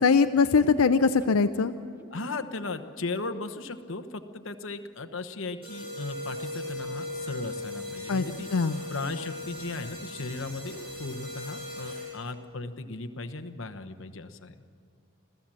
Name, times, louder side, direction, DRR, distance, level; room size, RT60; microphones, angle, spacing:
voice 1, 0.0-1.7 8.1-8.2 8.5-8.8, left 5 dB, 85° left, 9 dB, 0.6 m, -22 dB
sound 1, 0.7-4.6 4.8-4.9 5.2-5.3, left 1 dB, 10° right, 0.7 m, -45 dB
voice 2, 2.1-8.5 8.9-14.5, left 3 dB, 60° left, 9 dB, 1.0 m, -36 dB
sound 2, 5.6-12.4, left 1 dB, 25° right, 7.7 m, -38 dB
26.5 x 15.5 x 7.6 m, 2.2 s
head